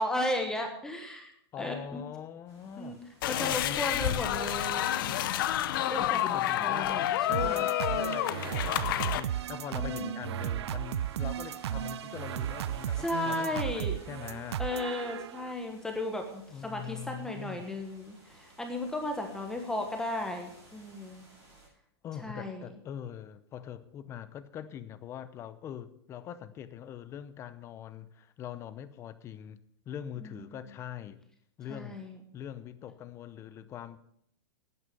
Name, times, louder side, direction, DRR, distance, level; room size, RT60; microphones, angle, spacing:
voice 1, 0.0-2.0 2.8-3.0 3.3-5.4 5.9-7.7 9.7-10.4 13.0-14.0 14.6-21.2 22.2-22.7 30.2-30.6 31.7-32.2, left 1 dB, 5° left, 1.3 m, -35 dB
voice 2, 1.5-3.0 3.4-4.3 6.0-14.6 16.5-17.6 22.0-29.6 29.9-31.2 31.6-32.0 32.3-34.0, left 9 dB, 20° left, 0.7 m, -43 dB
sound 1, 2.5-21.7, right 1 dB, 20° right, 7.3 m, -58 dB
sound 2, 3.2-9.2, left 13 dB, 55° left, 0.8 m, -29 dB
sound 3, 7.3-15.5, right 11 dB, 90° right, 0.4 m, -35 dB
11.5 x 9.6 x 6.7 m
supercardioid pair, 155°, 14 cm